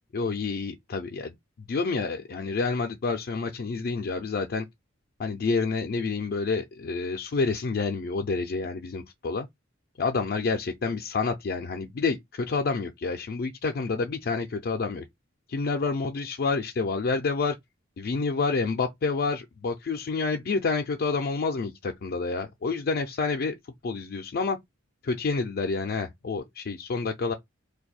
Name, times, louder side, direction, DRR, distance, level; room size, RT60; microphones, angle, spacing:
voice 1, 0.1-1.3 1.7-4.6 5.2-9.5 10.0-15.0 15.5-17.6 18.0-23.6 23.8-24.6 25.0-27.3, left 4 dB, 50° left, 0.4 m, -28 dB
2.6 x 2.2 x 4.1 m
head